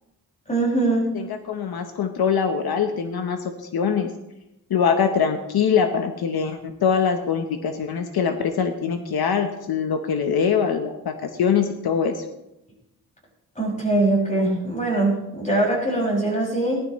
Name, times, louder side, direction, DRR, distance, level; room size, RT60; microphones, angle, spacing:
voice 1, 0.5-1.1 13.6-16.8, right 2 dB, 20° left, -3 dB, 6.3 m, -22 dB
voice 2, 1.1-4.1 4.7-12.2, left 6 dB, 80° left, 5 dB, 1.1 m, -23 dB
18.5 x 12.0 x 3.2 m, 0.90 s
wide cardioid pair, 135°, 37 cm